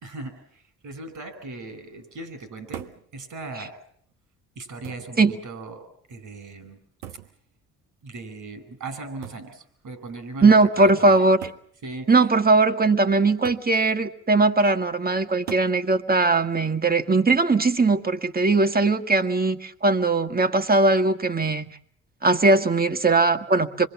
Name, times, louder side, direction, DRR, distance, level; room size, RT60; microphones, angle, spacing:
voice 1, 0.0-3.8 4.5-6.8 8.0-11.2 11.8-12.1, right 3 dB, 60° right, 11 dB, 4.8 m, -38 dB
sound 1, 2.7-3.1 4.1-4.2 4.8-5.2 7.0-7.4 9.2-9.5 10.6-10.7 11.4-11.7 13.5-13.7 15.5-15.8 17.3-17.7, right 11 dB, 90° right, 1.0 m, -39 dB
voice 2, 10.4-11.4 12.1-21.8 22.2-23.9, right 3 dB, 25° right, 8 dB, 1.9 m, -20 dB
26.0 x 21.5 x 7.2 m, 0.62 s
hypercardioid pair, 50°, 35 cm